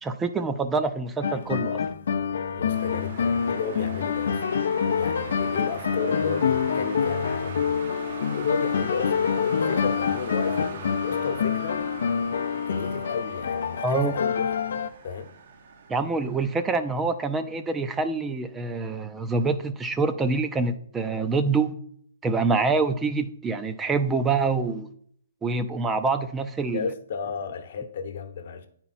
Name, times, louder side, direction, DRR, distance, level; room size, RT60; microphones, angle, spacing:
voice 1, 0.0-1.8 13.8-14.1 15.9-21.7 22.2-24.9 25.4-26.9, right 4 dB, 10° right, 0.4 m, -26 dB
sound 1, 1.2-14.9, left 7 dB, 70° left, 0.5 m, -26 dB
voice 2, 2.5-4.4 5.0-11.8 12.6-14.6 15.0-15.3 26.7-28.7, left 5 dB, 55° left, 0.9 m, -33 dB
sound 2, 2.7-17.6, right 6 dB, 55° right, 0.8 m, -41 dB
9.3 x 4.4 x 4.2 m
hypercardioid pair, 155°, 0 cm